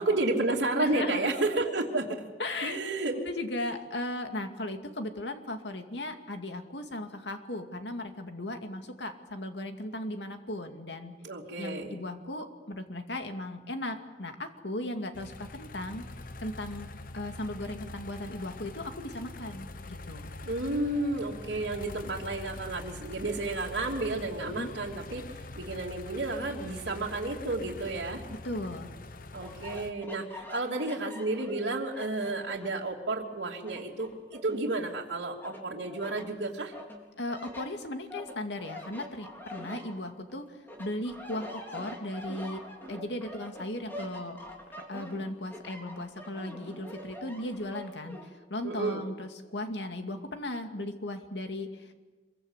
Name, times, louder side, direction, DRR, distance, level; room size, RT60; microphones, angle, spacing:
voice 1, 0.0-2.2 2.6-3.2 11.2-12.0 20.4-25.2 25.6-28.2 29.3-36.7 48.6-49.0, right 2 dB, 80° right, -4 dB, 3.0 m, -31 dB
voice 2, 0.8-1.3 2.4-2.8 3.3-11.2 11.6-16.0 16.4-16.9 17.1-20.3 24.5-24.7 28.4-28.9 37.2-42.6 42.9-44.4 44.9-51.9, left 1 dB, 75° left, 6 dB, 2.4 m, -37 dB
sound 1, 15.1-29.9, left 2 dB, 50° left, 1.0 m, -44 dB
sound 2, 29.3-32.8 33.2-35.0 35.4-36.3 36.7-40.3 40.7-48.3, left 1 dB, 10° left, 4.2 m, -45 dB
26.0 x 23.0 x 8.2 m, 1.3 s
head